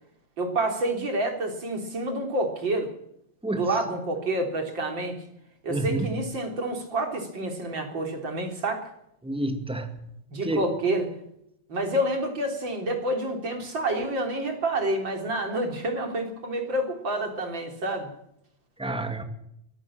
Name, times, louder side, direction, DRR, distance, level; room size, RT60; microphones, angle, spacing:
voice 1, 0.4-2.9 3.5-5.2 5.6-8.8 10.3-11.1 11.7-18.1, right 1 dB, 35° right, 4.2 m, -28 dB
voice 2, 5.7-6.1 9.2-9.9 10.4-10.6 18.8-19.2, right 1 dB, ahead, 1.5 m, -28 dB
23.5 x 15.5 x 7.4 m
omnidirectional pair, 3.5 m